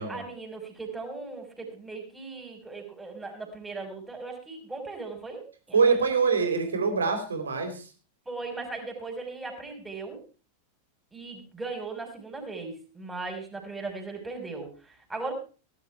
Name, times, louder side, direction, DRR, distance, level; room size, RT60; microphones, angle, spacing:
voice 1, 0.1-6.0 8.3-10.2 11.1-15.3, right 3 dB, 10° right, 1 dB, 5.7 m, -38 dB
voice 2, 5.7-7.9, right 5 dB, 70° right, 6 dB, 3.9 m, -24 dB
18.0 x 11.5 x 4.7 m, 0.37 s
figure-of-eight pair, 90°, 0 cm